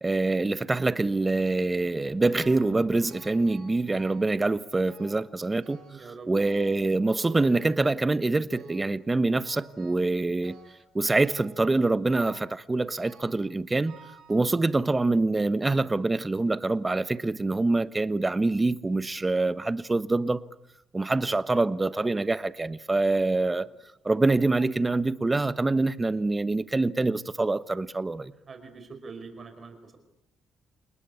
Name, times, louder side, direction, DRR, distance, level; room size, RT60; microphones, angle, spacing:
voice 1, 0.0-5.8 6.3-10.6 10.9-14.0 14.3-20.4 20.9-23.7 24.0-28.3, right 2 dB, 20° right, 1.2 m, -25 dB
sound 1, 2.4-2.8 3.1-4.4 4.9-5.3 5.6-6.1 6.4-8.1 8.5-9.0 9.4-10.1 10.4-10.9 11.2-11.6 12.1-12.5 13.0-13.5 13.9-14.9 15.6-15.7 16.5-16.6 17.0-17.1, right 5 dB, 80° right, 5.9 m, -51 dB
voice 2, 5.8-6.3 6.6-6.8 23.4-23.6 28.5-30.0, right 4 dB, 40° right, 5.1 m, -45 dB
29.0 x 20.0 x 8.4 m
cardioid pair, 90°, 0 cm